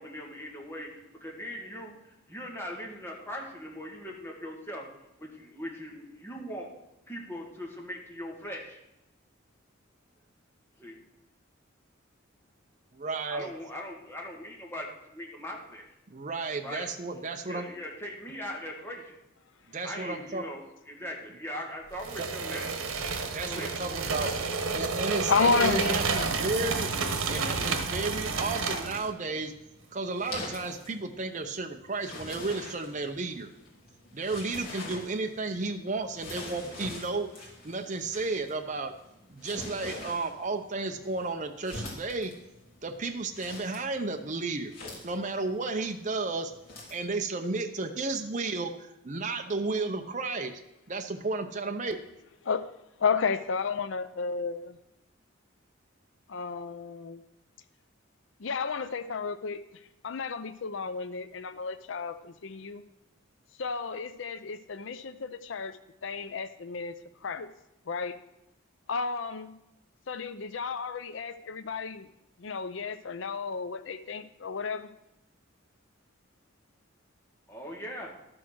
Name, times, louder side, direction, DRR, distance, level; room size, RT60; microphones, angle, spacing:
voice 1, 0.0-4.9 5.2-6.7 7.1-8.8 10.8-11.0 13.3-15.8 16.6-16.9 17.3-19.2 19.8-22.6 23.5-24.5 77.5-78.1, equal, 10° left, -1 dB, 2.1 m, -40 dB
voice 2, 12.9-13.5 16.1-17.6 19.7-20.5 22.2-22.3 23.3-24.3 24.7-26.9 27.3-29.5 29.9-33.5 34.1-37.3 37.6-38.9 39.3-42.3 42.8-44.7 45.0-46.5 46.9-50.5 50.9-52.0, right 3 dB, 35° right, 5 dB, 0.7 m, -33 dB
sound 1, 22.0-29.1, right 4 dB, 90° right, 1.2 m, -30 dB
voice 3, 25.3-26.5 52.4-52.7 53.0-54.8 56.3-57.2 58.4-62.8 63.6-66.9 67.2-67.5 67.9-68.2 68.9-69.5 70.1-72.1 72.4-74.9, left 5 dB, 65° left, 12 dB, 0.5 m, -32 dB
sound 2, 29.3-47.1, left 2 dB, 45° left, 3.1 m, -45 dB
12.5 x 6.2 x 6.2 m, 0.89 s
head